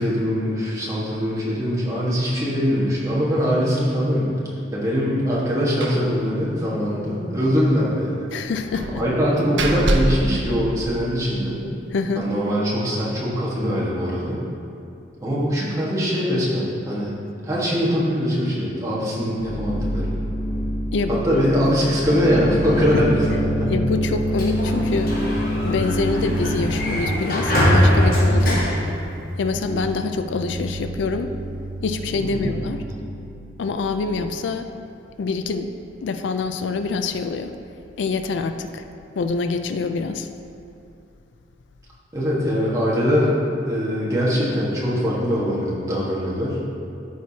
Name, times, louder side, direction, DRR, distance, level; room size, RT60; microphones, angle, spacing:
voice 1, 0.0-4.3 4.7-8.3 8.9-11.6 12.1-14.4 15.2-17.1 17.4-20.2 21.1-23.2 23.6-23.7 32.3-32.5 42.1-46.7, equal, 15° right, -7 dB, 1.4 m, -22 dB
Slam, 5.8-6.1 6.4-6.5 6.8-7.0 8.7-11.3, right 2 dB, 75° right, 0.7 m, -25 dB
voice 2, 8.3-9.0 11.9-12.3 20.9-21.4 22.9-23.0 23.7-25.2 25.6-28.6 29.4-31.3 31.8-32.8 33.6-34.7 35.2-35.7 36.0-37.5 38.0-38.8 39.2-40.3, left 4 dB, 75° left, 8 dB, 0.4 m, -25 dB
sound 1, 19.4-27.1 28.1-28.8 29.4-30.0 30.2-34.3, equal, 20° left, 0.6 m, -27 dB
Sliding door, 24.1-29.7, equal, 50° left, 1.4 m, -22 dB
13.5 x 4.7 x 2.8 m, 2.6 s
head